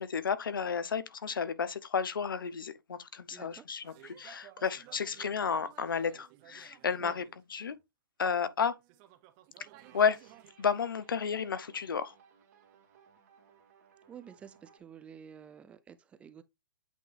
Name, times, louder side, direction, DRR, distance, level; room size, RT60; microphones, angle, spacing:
voice 1, 0.0-7.2 7.5-7.7 8.2-8.8 9.9-10.2 10.6-12.1, left 6 dB, 85° left, 0.8 m, -32 dB
voice 2, 3.3-3.7 7.0-7.1 14.1-16.4, right 8 dB, 10° right, 0.4 m, -50 dB
sound 1, 3.8-7.8 8.2-10.5, right 13 dB, 30° right, 0.8 m, -56 dB
sound 2, 9.8-14.8, right 7 dB, 45° right, 2.1 m, -62 dB
8.3 x 3.4 x 3.3 m
hypercardioid pair, 150°, 11 cm